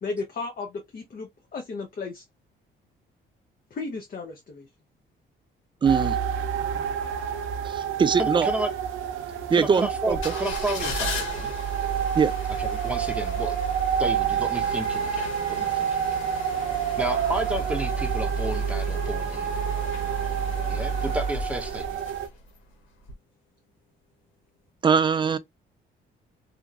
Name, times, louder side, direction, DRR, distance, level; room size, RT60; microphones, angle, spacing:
voice 1, 0.0-2.2 3.7-4.7, left 4 dB, 45° left, 0.8 m, -34 dB
voice 2, 5.8-6.2 7.6-8.5 9.5-10.2 12.2-12.3 24.8-25.4, right 6 dB, 25° right, 0.3 m, -22 dB
sound 1, 5.8-22.3, right 8 dB, 85° right, 0.5 m, -29 dB
voice 3, 8.2-8.7 9.5-11.5 12.6-13.6 14.0-16.3 17.0-19.7 20.7-22.0, right 1 dB, 5° right, 0.8 m, -32 dB
sound 2, 10.1-22.6 23.0-23.1, right 3 dB, 85° left, 1.2 m, -32 dB
2.8 x 2.5 x 2.4 m
cardioid pair, 90°, 20 cm